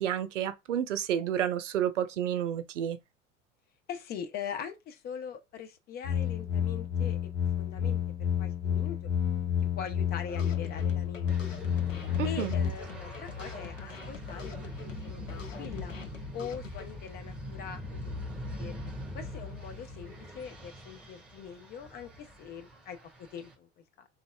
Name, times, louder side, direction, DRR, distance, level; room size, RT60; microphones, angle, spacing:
voice 1, 0.0-3.0 12.2-12.5, right 10 dB, 70° right, 0.6 m, -30 dB
voice 2, 3.9-7.2 7.6-9.0 9.7-11.6 12.2-15.9 16.3-18.1 18.6-18.8 19.1-24.1, left 7 dB, 25° left, 0.4 m, -42 dB
sound 1, 6.0-12.7, left 9 dB, 65° left, 1.1 m, -30 dB
sound 2, 10.3-16.9, left 5 dB, 85° left, 0.6 m, -45 dB
sound 3, 11.3-23.5, left 1 dB, 5° right, 1.8 m, -42 dB
3.9 x 2.4 x 2.2 m
figure-of-eight pair, 75°, 38 cm